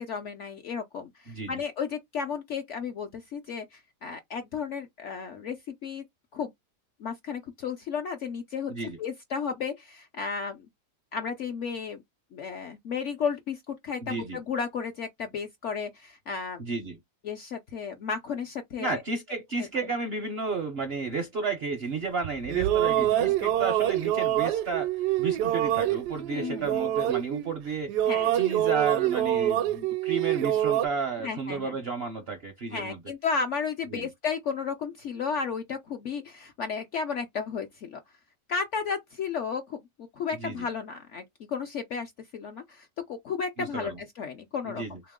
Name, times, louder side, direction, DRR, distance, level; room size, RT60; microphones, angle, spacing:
voice 1, 0.0-6.0 6.3-6.5 7.0-8.7 9.0-10.7 11.1-12.0 12.3-16.6 17.2-19.0 19.6-19.7 22.9-23.3 26.3-26.8 28.1-28.3 31.2-31.8 32.7-38.0 38.5-45.0, left 6 dB, 65° left, 0.7 m, -33 dB
voice 2, 14.0-14.4 16.6-17.0 18.8-24.9 25.2-28.0 28.3-33.0 33.9-34.1 40.4-40.6 43.6-44.0 44.6-45.0, right 4 dB, 60° right, 0.6 m, -32 dB
sound 1, 22.2-27.6 27.9-30.9, right 12 dB, 80° right, 1.1 m, -26 dB
3.4 x 2.9 x 3.5 m
omnidirectional pair, 1.8 m